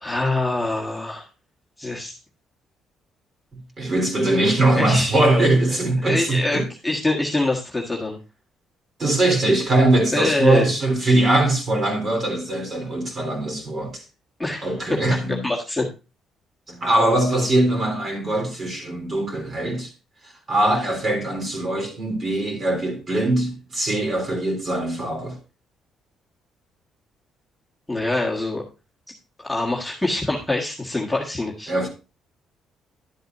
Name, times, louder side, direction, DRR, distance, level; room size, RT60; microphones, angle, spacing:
voice 1, 0.0-1.2 1.8-2.2 4.8-5.2 6.0-8.2 10.1-10.7 11.0-11.2 14.4-14.7 15.4-15.9 27.9-28.6 29.4-31.7, left 2 dB, 5° left, 1.7 m, -24 dB
voice 2, 3.5-6.7 9.0-14.0 14.6-15.5 16.7-19.9 20.2-25.4 31.7-31.9, right 2 dB, 35° right, 3.4 m, -21 dB
11.5 x 7.6 x 2.6 m
cardioid pair, 135°, 0 cm